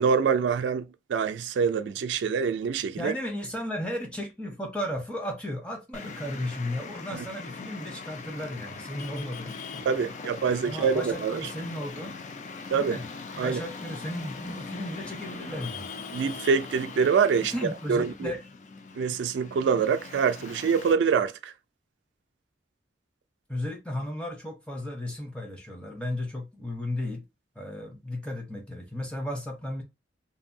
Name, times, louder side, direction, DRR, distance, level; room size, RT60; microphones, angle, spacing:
voice 1, 0.0-3.1 7.1-7.2 9.9-11.4 12.7-13.0 13.4-13.6 16.1-18.3 19.0-21.5, right 6 dB, 80° right, 0.3 m, -25 dB
voice 2, 3.0-10.0 10.6-12.2 12.7-13.0 13.3-15.9 17.5-18.4 23.5-27.2 27.6-29.8, left 1 dB, 5° left, 0.6 m, -34 dB
Traffic noise roadway noise, 5.9-20.9, left 4 dB, 40° left, 0.3 m, -41 dB
2.7 x 2.6 x 2.6 m
head